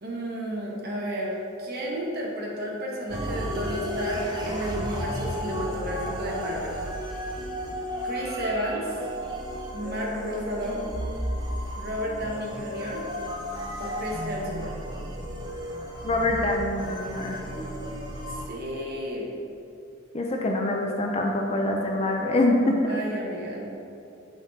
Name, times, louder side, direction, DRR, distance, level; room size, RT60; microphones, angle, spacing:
voice 1, 0.0-6.7 8.0-9.0 9.7-10.8 11.8-13.0 13.8-14.7 18.3-19.3 22.9-23.7, equal, 45° right, -2 dB, 1.0 m, -32 dB
sound 1, 3.1-18.5, equal, 20° right, 0.6 m, -33 dB
voice 2, 16.0-17.4 20.1-22.8, left 2 dB, 30° left, 1 dB, 0.4 m, -25 dB
5.3 x 5.1 x 4.0 m, 2.6 s
head